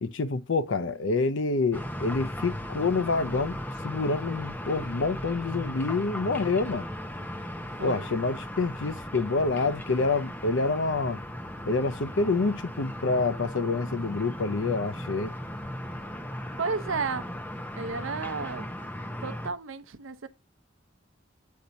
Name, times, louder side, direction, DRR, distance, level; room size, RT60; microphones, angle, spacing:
voice 1, 0.0-3.6 3.8-6.9 7.8-11.2 11.6-15.3, left 3 dB, 65° left, 0.6 m, -27 dB
sound 1, 1.7-19.5, left 1 dB, 10° left, 0.7 m, -37 dB
voice 2, 16.6-17.3 17.8-18.7 19.2-20.3, right 4 dB, 80° right, 0.6 m, -32 dB
8.5 x 2.9 x 5.2 m
head